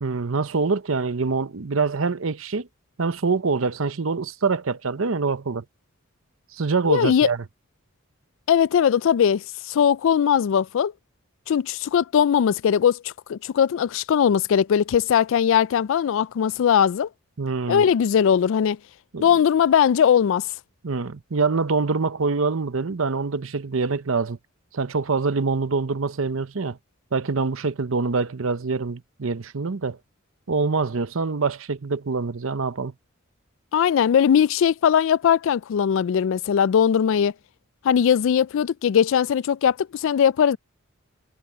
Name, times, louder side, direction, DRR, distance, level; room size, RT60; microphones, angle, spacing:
voice 1, 0.0-2.7 3.0-5.6 6.5-7.4 17.4-17.8 19.1-19.3 20.8-24.4 24.7-26.8 27.1-30.0 30.5-32.9, right 4 dB, 70° right, 0.8 m, -25 dB
voice 2, 6.9-7.3 8.5-10.9 11.5-17.1 17.7-18.8 19.2-20.4 33.7-37.3 37.8-40.6, left 8 dB, 65° left, 0.3 m, -20 dB
head